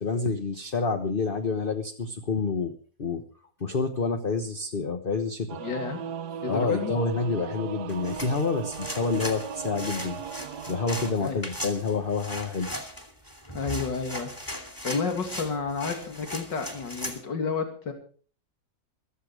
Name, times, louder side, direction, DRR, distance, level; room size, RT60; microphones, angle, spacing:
voice 1, 0.0-2.7 3.0-3.2 3.6-5.6 6.5-10.2 10.7-12.7, left 4 dB, 35° left, 6 dB, 1.2 m, -28 dB
Singing / Musical instrument, 5.5-11.1, right 7 dB, 60° right, 1.5 m, -37 dB
voice 2, 5.6-6.0 6.4-6.9 11.2-11.4 13.5-17.9, left 5 dB, 70° left, 5 dB, 3.3 m, -31 dB
sound 1, 7.9-17.2, equal, 10° left, 2.5 m, -38 dB
15.5 x 14.0 x 4.9 m, 0.42 s
omnidirectional pair, 2.0 m